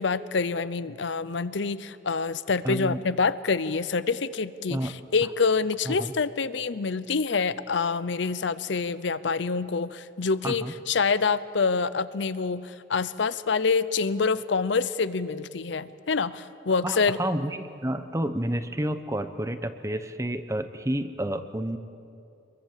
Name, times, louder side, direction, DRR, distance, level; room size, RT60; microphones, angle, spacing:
voice 1, 0.0-17.2, left 4 dB, 65° left, 15 dB, 0.6 m, -26 dB
voice 2, 2.6-3.0 4.7-4.9 5.9-6.0 10.4-10.7 16.8-21.8, right 1 dB, 15° right, 10 dB, 0.9 m, -30 dB
27.0 x 22.5 x 7.4 m, 2.6 s
head